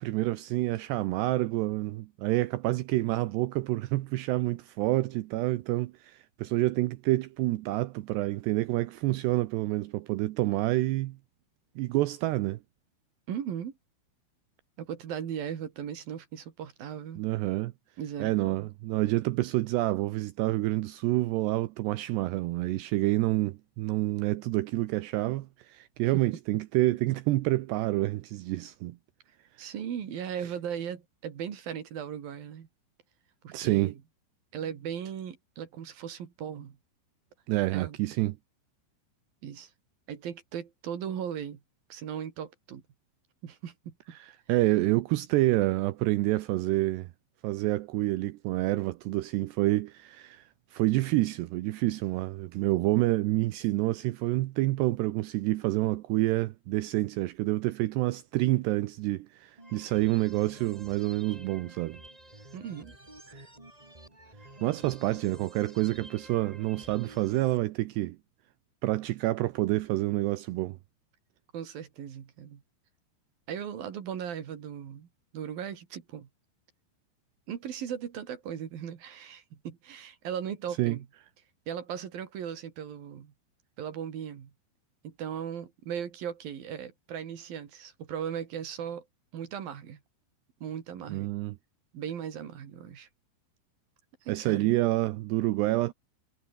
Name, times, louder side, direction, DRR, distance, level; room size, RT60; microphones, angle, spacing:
voice 1, 0.0-11.2 11.8-12.6 17.2-17.7 18.2-29.0 33.5-33.9 37.5-38.4 44.2-47.1 47.4-62.0 63.3-63.5 64.6-68.2 68.8-70.8 80.8-81.0 91.1-91.6 94.3-95.9, right 18 dB, 75° right, 2.7 m, -28 dB
voice 2, 13.3-13.8 14.8-17.2 18.0-18.7 26.1-26.2 29.6-32.7 33.4-34.0 34.5-36.8 37.7-38.0 39.4-39.7 40.1-41.6 41.9-42.8 43.4-43.9 62.5-62.9 71.5-72.6 73.5-75.1 75.3-76.3 77.5-81.1 81.7-83.3 83.8-84.5 85.0-89.1 89.3-90.0 90.6-91.3 91.9-93.1 94.2-94.7, right 8 dB, 55° right, 3.9 m, -37 dB
sound 1, 59.6-67.6, right 1 dB, 10° right, 3.2 m, -50 dB
omnidirectional pair, 5.3 m